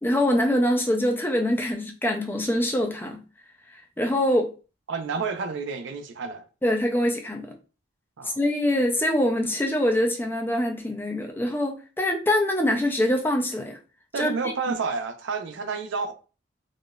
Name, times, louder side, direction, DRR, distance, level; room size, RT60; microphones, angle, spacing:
voice 1, 0.0-3.2 3.7-4.5 6.6-7.5 8.2-13.8 14.2-14.3, left 1 dB, 10° left, 0.4 m, -24 dB
voice 2, 4.9-6.5 8.2-8.4 14.1-16.1, right 4 dB, 65° right, 0.4 m, -30 dB
3.5 x 2.4 x 2.2 m
head